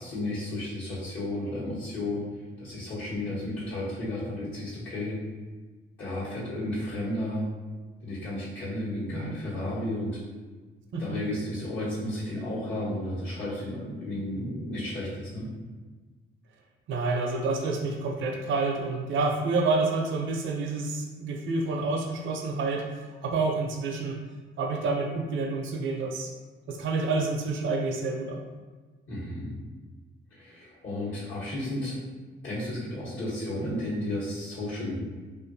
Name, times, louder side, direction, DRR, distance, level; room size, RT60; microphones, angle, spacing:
voice 1, 0.0-2.3 2.6-5.2 6.0-7.4 8.0-10.2 11.0-15.5 29.1-29.5 30.3-32.0 32.4-35.0, left 1 dB, 70° left, -11 dB, 1.1 m, -33 dB
voice 2, 16.9-24.2 24.6-26.3 26.7-28.4, right 3 dB, 75° right, 2 dB, 0.5 m, -28 dB
2.6 x 2.5 x 2.6 m, 1.3 s
cardioid pair, 90°, 20 cm